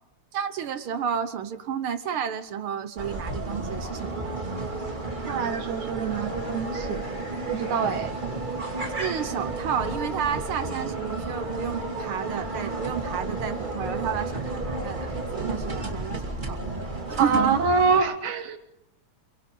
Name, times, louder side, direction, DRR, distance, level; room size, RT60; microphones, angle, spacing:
voice 1, 0.3-4.4 9.0-16.6 17.1-17.6, right 8 dB, 65° right, 10 dB, 1.4 m, -31 dB
sound 1, 3.0-18.0, right 2 dB, 15° right, 2.4 m, -32 dB
voice 2, 5.3-7.1 7.5-8.1 17.2-18.6, right 5 dB, 85° right, 7 dB, 3.0 m, -25 dB
28.5 x 23.5 x 3.9 m, 0.83 s
omnidirectional pair, 3.3 m